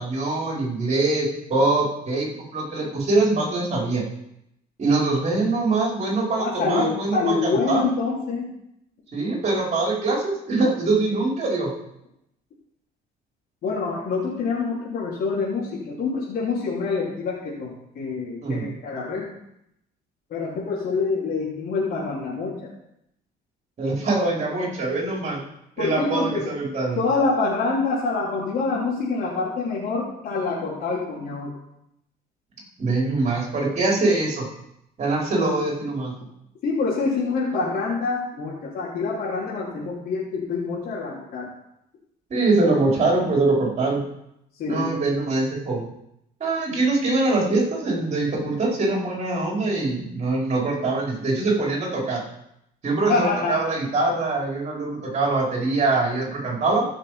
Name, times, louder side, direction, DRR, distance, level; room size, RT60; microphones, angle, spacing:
voice 1, 0.0-4.0 4.8-7.8 9.1-11.7 18.4-18.7 23.8-25.4 25.8-27.0 32.8-34.5 35.0-36.1 42.3-44.0 44.6-45.9 46.4-52.2 52.8-56.9, right 2 dB, 40° right, -2 dB, 5.0 m, -23 dB
voice 2, 6.4-8.5 13.6-19.2 20.3-22.5 25.8-26.4 27.0-31.5 36.6-41.5 44.6-44.9 53.1-53.6, left 4 dB, 65° left, -8 dB, 3.5 m, -26 dB
15.0 x 6.5 x 5.1 m, 0.79 s
cardioid pair, 110°, 17 cm